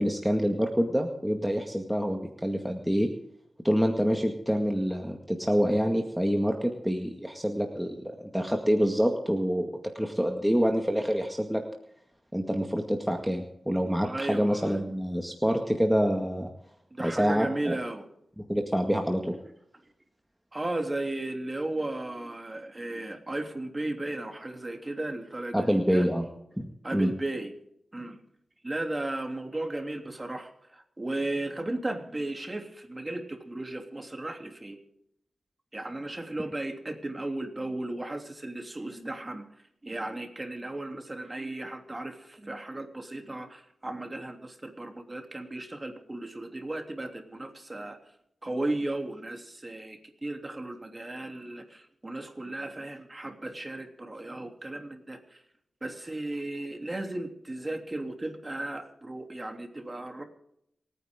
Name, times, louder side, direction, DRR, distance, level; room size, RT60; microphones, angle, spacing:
voice 1, 0.0-3.1 3.6-11.6 12.3-16.5 17.0-17.8 18.4-19.4 25.5-26.2 26.6-27.1, equal, 5° right, 2 dB, 2.0 m, -27 dB
voice 2, 14.0-14.8 16.9-18.1 20.5-26.1 26.8-27.5 27.9-28.2 28.6-34.8 35.7-39.5 39.8-48.0 48.4-55.4 55.8-60.2, right 2 dB, 25° right, 4 dB, 3.1 m, -35 dB
27.5 x 10.0 x 3.8 m, 0.76 s
cardioid pair, 60°, 0 cm